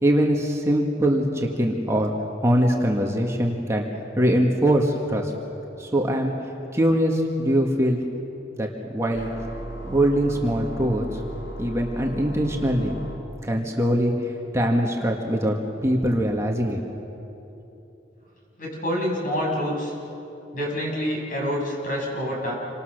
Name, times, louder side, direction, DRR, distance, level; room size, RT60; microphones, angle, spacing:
voice 1, 0.0-2.1 2.4-3.8 4.2-5.3 5.8-6.3 6.7-8.0 8.6-9.3 9.8-11.1 11.6-12.9 13.4-16.8, equal, 15° right, 0 dB, 1.8 m, -22 dB
sound 1, 9.1-13.2, right 1 dB, 75° left, 3.6 m, -36 dB
voice 2, 18.6-19.9 20.5-22.5, equal, 50° left, -2 dB, 7.3 m, -27 dB
28.0 x 25.0 x 6.7 m, 3.0 s
head